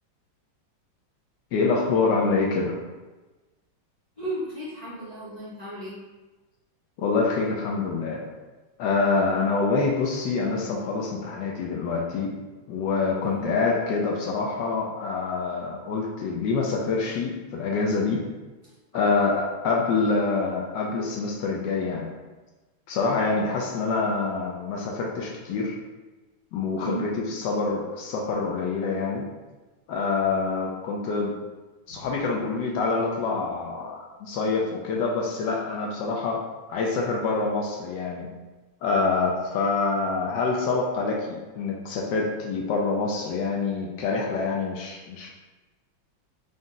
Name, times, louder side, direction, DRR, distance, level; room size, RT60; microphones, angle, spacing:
voice 1, 1.5-2.8 7.0-8.3 8.8-12.3 12.7-18.2 18.9-22.1 22.9-25.8 26.5-29.2 29.9-31.3 31.9-36.4 36.7-38.3 38.8-45.3, left 4 dB, 75° left, -1 dB, 1.2 m, -26 dB
voice 2, 4.2-6.0 13.2-13.5 18.9-19.3 26.8-27.0 31.9-32.1, right 1 dB, 45° left, -10 dB, 0.5 m, -35 dB
3.7 x 2.6 x 3.7 m, 1.2 s
omnidirectional pair, 2.2 m